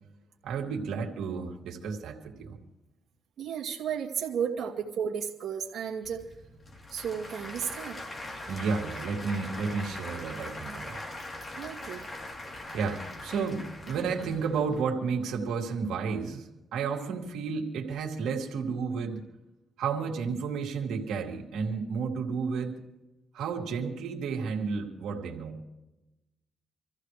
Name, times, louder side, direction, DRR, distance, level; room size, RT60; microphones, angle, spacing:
voice 1, 0.4-2.6 8.5-11.0 12.7-19.3 19.8-22.8 23.3-25.6, right 5 dB, 85° right, 0 dB, 2.3 m, -32 dB
voice 2, 3.4-6.2 6.9-8.0 11.6-12.0, right 7 dB, 65° right, -2 dB, 2.1 m, -33 dB
Applause / Crowd, 6.0-14.8, left 1 dB, 35° left, 3.4 m, -41 dB
26.5 x 14.5 x 3.3 m, 0.97 s
cardioid pair, 70°, 0 cm